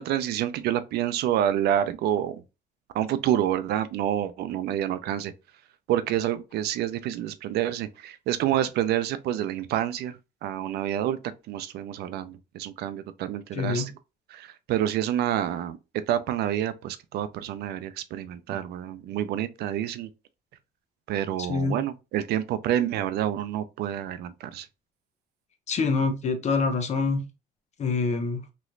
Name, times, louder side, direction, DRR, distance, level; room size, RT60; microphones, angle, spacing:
voice 1, 0.0-2.4 2.9-5.3 5.9-11.2 11.5-13.9 14.3-20.1 21.1-24.7, right 11 dB, 75° right, 0.5 m, -28 dB
voice 2, 13.5-13.9 21.5-21.7 25.7-27.2 27.8-28.4, left 4 dB, 40° left, 0.8 m, -25 dB
3.0 x 2.9 x 2.5 m
cardioid pair, 110°, 17 cm